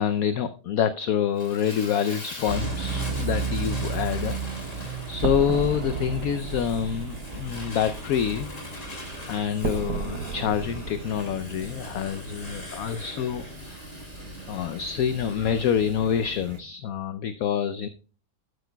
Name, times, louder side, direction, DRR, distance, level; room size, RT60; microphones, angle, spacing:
voice 1, 0.0-4.4 5.1-8.9 9.3-13.8 14.5-17.9, left 8 dB, 65° left, 12 dB, 1.0 m, -27 dB
Fire, 1.4-16.0, left 2 dB, 45° left, 3.3 m, -43 dB
sound 1, 2.5-16.6, right 4 dB, 40° right, 1.4 m, -36 dB
sound 2, 5.2-13.2, right 7 dB, 70° right, 1.3 m, -35 dB
11.5 x 9.8 x 2.2 m, 0.38 s
omnidirectional pair, 1.8 m